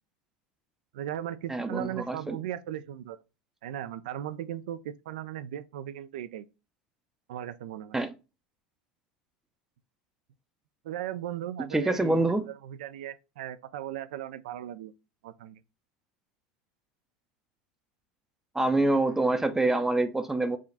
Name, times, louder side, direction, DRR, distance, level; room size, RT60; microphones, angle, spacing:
voice 1, 0.9-3.2 3.6-6.5 7.3-8.0 10.8-14.9 15.2-15.6, right 11 dB, 80° right, 0.5 m, -37 dB
voice 2, 1.5-2.4 7.9-8.1 11.6-12.5 18.5-20.6, right 2 dB, 10° right, 0.6 m, -26 dB
4.9 x 2.4 x 4.0 m
hypercardioid pair, 90°, 5 cm